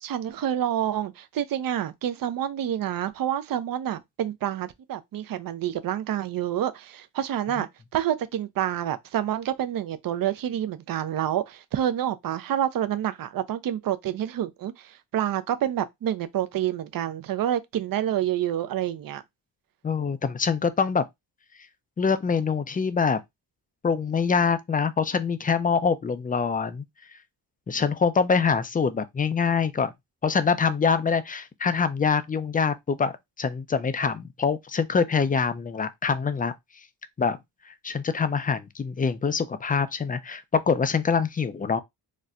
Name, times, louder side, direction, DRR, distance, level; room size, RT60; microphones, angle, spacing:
voice 1, 0.0-19.2, right 11 dB, 50° right, 0.5 m, -28 dB
voice 2, 19.8-21.1 22.0-23.2 23.8-26.8 27.7-29.9 30.2-33.1 33.4-36.5 37.2-37.4 37.8-41.8, left 5 dB, 20° left, 0.3 m, -24 dB
4.0 x 2.1 x 2.4 m
cardioid pair, 80°, 43 cm